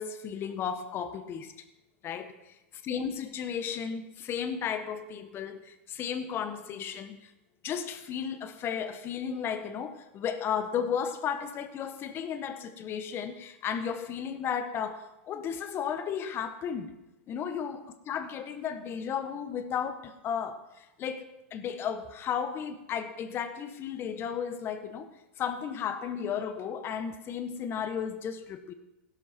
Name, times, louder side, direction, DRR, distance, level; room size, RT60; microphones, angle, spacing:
voice 1, 0.0-1.5 2.0-2.3 2.8-7.3 7.6-16.9 17.3-25.1 25.4-28.7, left 7 dB, 35° left, 9 dB, 1.5 m, -34 dB
16.0 x 12.5 x 4.5 m, 0.93 s
hypercardioid pair, 110°, 7 cm